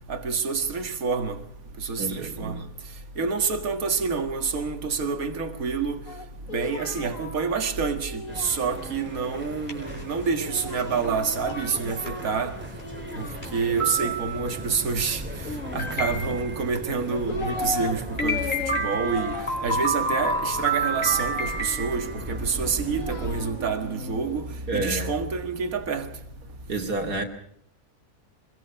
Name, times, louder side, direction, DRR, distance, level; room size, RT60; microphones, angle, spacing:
voice 1, 0.1-1.4 1.8-2.6 3.2-6.0 6.5-12.5 13.2-13.3 13.5-15.2 15.7-18.5 18.8-19.3 19.6-26.1, right 5 dB, 65° right, 2.2 m, -27 dB
voice 2, 1.9-2.7 24.7-25.2 26.7-27.2, right 2 dB, 85° right, 3.1 m, -30 dB
Singing, 6.1-9.3 10.5-12.5 12.8-14.0 15.4-16.4 16.9-17.9 18.2-21.9 22.6-24.9, left 3 dB, 60° left, 2.0 m, -37 dB
sound 1, 8.3-23.5, right 1 dB, 5° right, 3.1 m, -39 dB
sound 2, 9.5-10.1 10.8-10.9 11.5-11.6 12.1-12.2 12.8-12.9 13.4-13.5 13.8-14.6 15.8-16.7 18.2-22.4, right 2 dB, 30° left, 5.0 m, -28 dB
24.5 x 22.5 x 5.8 m
omnidirectional pair, 1.6 m